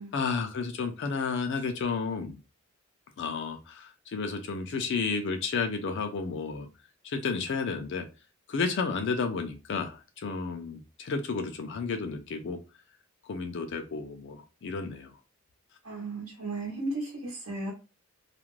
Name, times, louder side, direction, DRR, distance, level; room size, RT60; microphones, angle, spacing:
voice 1, 0.1-2.4 3.2-6.7 7.0-8.1 8.5-12.6 13.3-15.1, left 4 dB, 55° left, 6 dB, 0.4 m, -32 dB
voice 2, 15.8-17.7, right 2 dB, 80° right, -4 dB, 0.8 m, -35 dB
2.4 x 2.1 x 3.0 m, 0.30 s
head